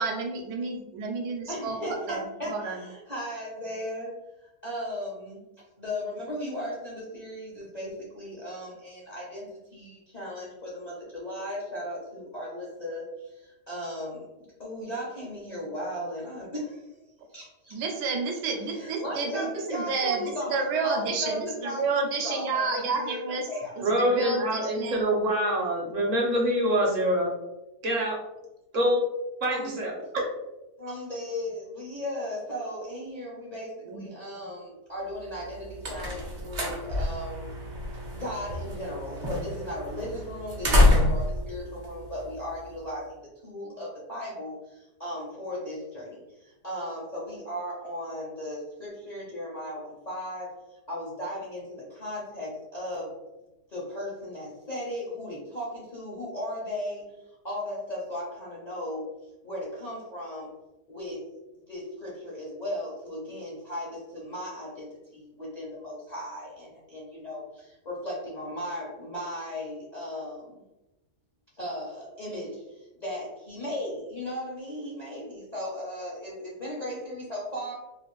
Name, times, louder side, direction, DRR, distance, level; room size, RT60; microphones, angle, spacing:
voice 1, 0.0-2.8 17.7-23.5 23.8-25.1 33.9-34.0, right 4 dB, 80° right, 2 dB, 1.2 m, -30 dB
voice 2, 1.5-4.1 4.6-5.4 5.8-16.9 17.3-17.7 18.7-23.2 23.5-23.9 29.5-29.7 30.8-37.5 38.1-40.8 41.1-50.5 50.9-53.1 53.7-57.1 57.4-59.0 59.4-60.5 60.9-61.2 61.7-70.6 71.6-77.7, left 1 dB, 45° left, -6 dB, 0.5 m, -36 dB
voice 3, 23.8-27.4 27.8-28.2 28.7-29.1 29.4-30.3, equal, 60° right, -1 dB, 1.0 m, -25 dB
sound 1, 35.3-42.8, left 1 dB, 45° right, 0.6 m, -27 dB
3.0 x 2.5 x 3.0 m, 1.0 s
omnidirectional pair, 1.7 m